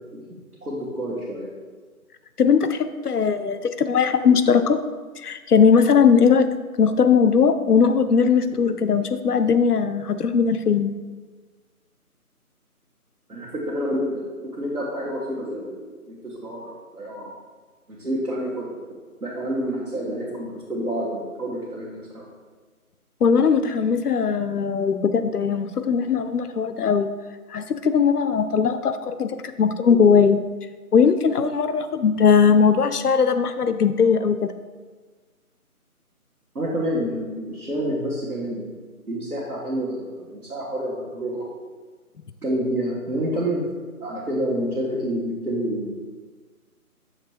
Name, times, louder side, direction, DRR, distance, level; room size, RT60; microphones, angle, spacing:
voice 1, 0.6-1.5 13.3-17.3 17.9-18.8 19.2-22.3 36.5-38.8 39.1-41.5 42.4-43.6 44.0-46.1, equal, 80° right, -7 dB, 1.5 m, -28 dB
voice 2, 2.4-4.8 5.2-10.9 23.2-27.1 27.5-30.4 30.9-34.5, left 6 dB, 90° left, 10 dB, 0.6 m, -19 dB
6.5 x 3.3 x 4.5 m, 1.4 s
figure-of-eight pair, 160°, 45 cm